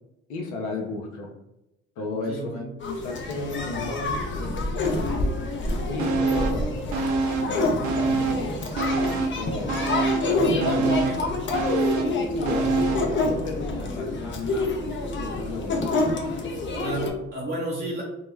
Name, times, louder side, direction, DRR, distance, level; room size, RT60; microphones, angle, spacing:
voice 1, 0.3-1.3 2.0-5.0 5.9-6.7 7.4-9.8 10.3-11.2 12.3-16.0, left 2 dB, 85° left, 0 dB, 0.6 m, -34 dB
voice 2, 2.1-2.7 9.6-9.9 10.2-11.5 16.8-18.0, right 2 dB, 35° right, -4 dB, 0.7 m, -32 dB
sound 1, 2.8-17.1, left 2 dB, 40° left, 0.6 m, -27 dB
sound 2, 6.0-6.6 6.9-8.5 8.8-13.1 13.5-13.6, right 4 dB, 75° right, 0.5 m, -26 dB
2.2 x 2.0 x 3.1 m, 0.91 s
hypercardioid pair, 55°, 30 cm